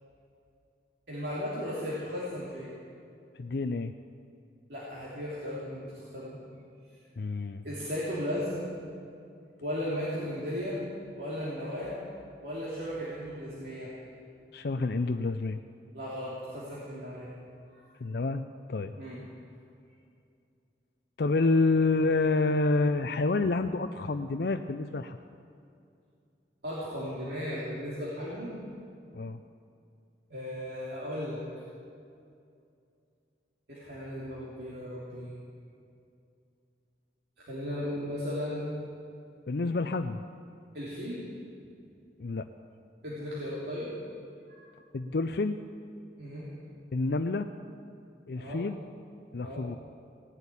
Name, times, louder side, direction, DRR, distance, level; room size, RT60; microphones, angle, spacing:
voice 1, 1.1-2.8 4.7-6.4 7.6-8.7 9.6-10.8 11.1-12.0 12.4-13.9 15.9-17.3 17.7-17.9 19.0-19.2 26.6-28.5 30.3-31.4 33.7-35.3 37.4-38.7 40.7-41.2 43.0-43.9 44.5-44.6 46.2-46.5 48.4-48.6 49.4-49.7, equal, 65° right, -8 dB, 3.1 m, -36 dB
voice 2, 3.4-3.9 7.2-7.6 14.5-15.6 18.0-18.4 18.7-18.9 21.2-25.2 29.1-29.4 39.5-40.2 42.2-42.5 44.9-45.6 46.9-47.5 48.3-48.8 49.3-49.8, left 3 dB, 60° left, 7 dB, 0.5 m, -28 dB
17.5 x 8.2 x 10.0 m, 2.5 s
head